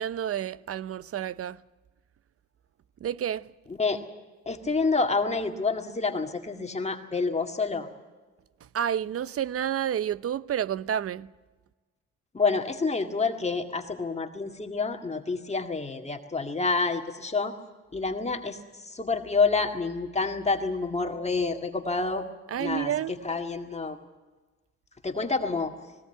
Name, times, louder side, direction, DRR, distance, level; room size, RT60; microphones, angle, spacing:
voice 1, 0.0-1.6 3.0-3.5 8.7-11.3 22.5-23.1, right 10 dB, 50° right, 0.7 m, -30 dB
voice 2, 4.5-7.9 12.3-17.5 17.9-22.2 22.6-24.0 25.0-25.7, left 4 dB, 20° left, 1.9 m, -28 dB
20.0 x 18.0 x 9.0 m
cardioid pair, 90°, 30 cm